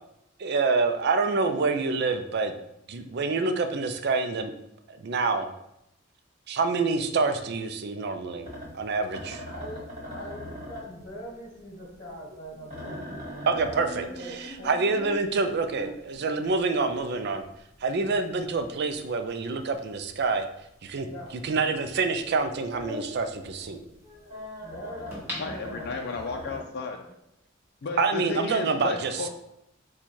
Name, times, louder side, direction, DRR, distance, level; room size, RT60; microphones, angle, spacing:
voice 1, 0.4-2.5 2.9-4.5 4.9-5.5 6.5-9.4 13.5-17.4 17.8-20.5 20.8-21.1 21.4-23.8 28.0-29.3, right 4 dB, 55° right, 8 dB, 0.4 m, -27 dB
sound 1, 8.4-22.0 22.3-26.6, left 1 dB, 35° right, 1.4 m, -41 dB
voice 2, 9.5-13.3 13.6-15.5 21.0-21.4 24.5-26.0, equal, 35° left, -4 dB, 1.4 m, -43 dB
sound 2, 25.1-26.4 26.9-27.0, left 1 dB, 10° right, 1.1 m, -38 dB
voice 3, 25.4-27.0 27.8-29.3, left 4 dB, 55° left, 2 dB, 0.5 m, -33 dB
4.1 x 2.3 x 4.6 m, 0.84 s
head